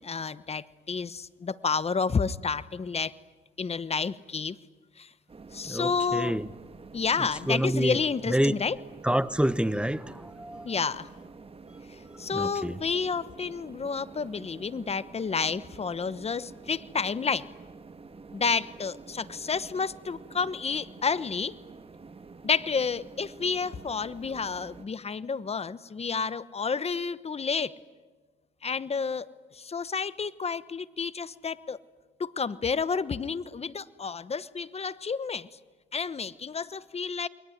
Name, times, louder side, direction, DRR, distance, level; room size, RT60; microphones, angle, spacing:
voice 1, 0.0-3.1 3.6-4.6 5.0-5.1 5.5-6.4 6.9-8.8 10.6-11.1 11.9-17.5 18.3-21.5 22.4-27.7 28.6-29.3 29.5-31.8 32.2-35.5 35.9-37.3, left 5 dB, 30° left, 16 dB, 1.1 m, -30 dB
sound 1, 5.3-24.9, right 4 dB, 30° right, 1.9 m, -48 dB
voice 2, 5.6-6.5 7.5-8.0 8.3-8.6 9.0-10.7 12.3-12.8, right 1 dB, 5° right, 15 dB, 1.0 m, -27 dB
28.5 x 22.0 x 9.4 m, 1.3 s
cardioid pair, 90°, 20 cm